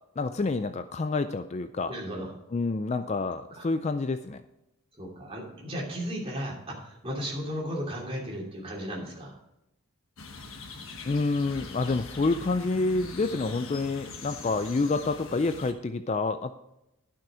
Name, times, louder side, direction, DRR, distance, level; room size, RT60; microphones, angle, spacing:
voice 1, 0.2-1.9 2.5-4.4 11.0-16.5, left 3 dB, 30° left, 10 dB, 0.3 m, -28 dB
voice 2, 1.9-2.3 3.5-3.7 5.0-9.3, equal, 25° right, -2 dB, 2.8 m, -35 dB
sound 1, 10.2-15.7, left 3 dB, 65° left, 1.2 m, -42 dB
12.0 x 6.2 x 4.9 m, 0.88 s
head